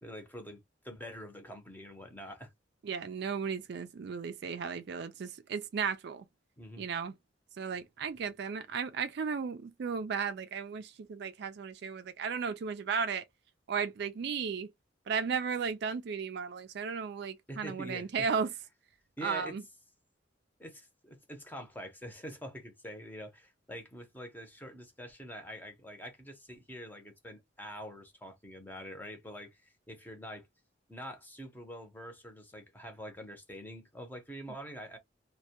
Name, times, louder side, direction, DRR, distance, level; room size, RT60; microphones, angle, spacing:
voice 1, 0.0-2.5 6.6-6.9 17.5-18.3 19.2-19.6 20.6-30.5 30.9-35.0, equal, 10° left, 0.7 m, -45 dB
voice 2, 2.8-6.2 6.8-7.1 7.6-13.2 13.7-14.7 15.1-18.5 19.2-19.6, right 6 dB, 60° right, 0.4 m, -35 dB
2.2 x 2.1 x 2.7 m
head